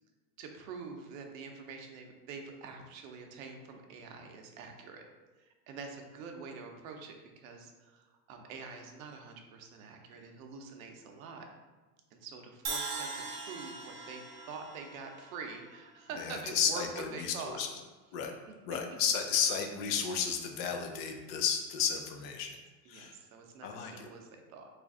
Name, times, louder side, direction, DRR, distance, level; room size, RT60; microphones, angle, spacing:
voice 1, 0.4-5.0 5.4-11.5 12.1-17.6 18.5-18.6 22.8-24.7, right 5 dB, 55° right, 3 dB, 0.7 m, -46 dB
Crash cymbal, 12.6-16.7, right 3 dB, 25° right, 0.4 m, -41 dB
voice 2, 16.2-17.7 18.1-18.3 18.7-22.6 22.9-23.2 23.6-24.1, left 7 dB, 40° left, 3 dB, 0.4 m, -33 dB
3.1 x 2.5 x 3.6 m, 1.2 s
supercardioid pair, 145°, 49 cm